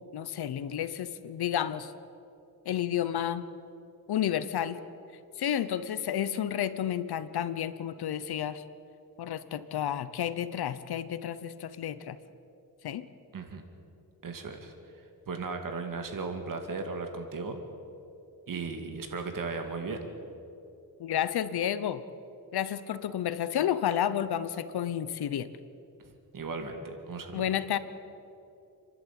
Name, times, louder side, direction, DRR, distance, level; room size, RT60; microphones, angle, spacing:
voice 1, 0.1-1.9 2.6-3.5 4.1-4.8 5.4-8.6 9.2-12.2 12.8-13.1 21.0-22.0 22.5-25.5 27.3-27.8, left 10 dB, 75° left, 14 dB, 1.0 m, -31 dB
voice 2, 14.2-14.7 15.3-17.6 18.5-20.1 26.3-27.4, right 4 dB, 55° right, 5 dB, 2.2 m, -36 dB
29.5 x 11.5 x 8.9 m, 2.7 s
wide cardioid pair, 130°, 38 cm